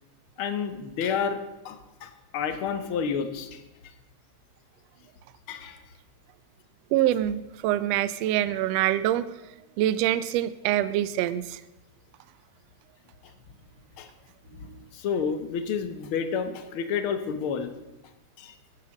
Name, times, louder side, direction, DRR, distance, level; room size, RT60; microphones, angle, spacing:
voice 1, 0.4-3.6 5.5-5.8 14.0-14.1 14.6-17.7 18.4-18.5, left 6 dB, 60° left, 10 dB, 1.5 m, -30 dB
voice 2, 6.9-9.3 9.8-11.6 14.7-14.8, right 13 dB, 75° right, 16 dB, 1.6 m, -25 dB
15.0 x 11.0 x 6.4 m, 0.98 s
omnidirectional pair, 3.5 m